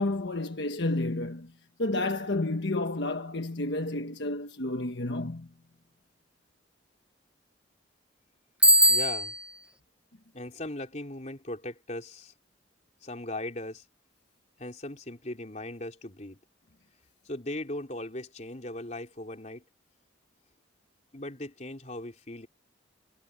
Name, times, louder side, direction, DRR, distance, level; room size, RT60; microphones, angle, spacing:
voice 1, 0.0-1.5 1.8-5.5, left 2 dB, 70° left, 1.3 m, -30 dB
Bicycle bell, 8.6-9.6, right 1 dB, 5° right, 1.0 m, -21 dB
voice 2, 8.9-9.3 10.3-12.3 13.0-13.8 14.6-16.4 17.2-19.6 21.1-22.5, left 1 dB, 40° left, 3.9 m, -38 dB
head